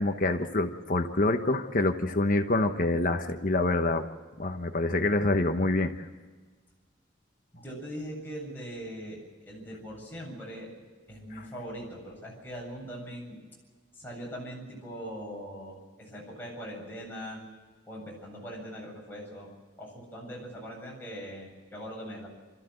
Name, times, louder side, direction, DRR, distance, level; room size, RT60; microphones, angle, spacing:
voice 1, 0.0-4.1 4.4-6.1, left 2 dB, 45° left, 7 dB, 1.1 m, -26 dB
voice 2, 7.5-9.2 9.5-10.7 11.1-13.4 13.9-17.4 17.9-19.5 19.8-22.3, equal, 10° left, -4 dB, 7.8 m, -41 dB
28.5 x 14.0 x 8.0 m, 1.4 s
head